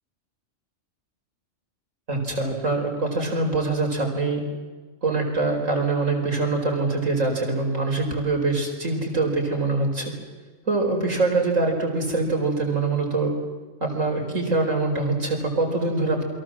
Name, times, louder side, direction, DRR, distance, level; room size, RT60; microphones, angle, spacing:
voice 1, 2.1-4.4 5.0-10.1 10.7-13.3 13.8-16.2, right 3 dB, 75° right, 2 dB, 5.3 m, -24 dB
28.5 x 23.0 x 7.6 m, 1.3 s
omnidirectional pair, 1.4 m